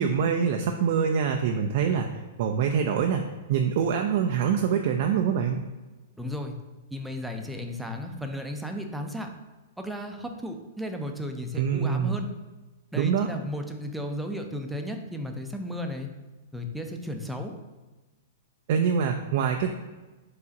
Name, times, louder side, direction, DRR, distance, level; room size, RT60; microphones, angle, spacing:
voice 1, 0.0-5.6 11.5-12.2 12.9-13.3 18.7-19.7, right 7 dB, 55° right, 4 dB, 0.3 m, -25 dB
voice 2, 6.2-6.6 6.9-9.3 9.8-12.3 12.9-16.1 16.5-17.6, equal, 5° right, 4 dB, 0.5 m, -34 dB
4.6 x 2.4 x 4.0 m, 1.2 s
hypercardioid pair, 110°, 0 cm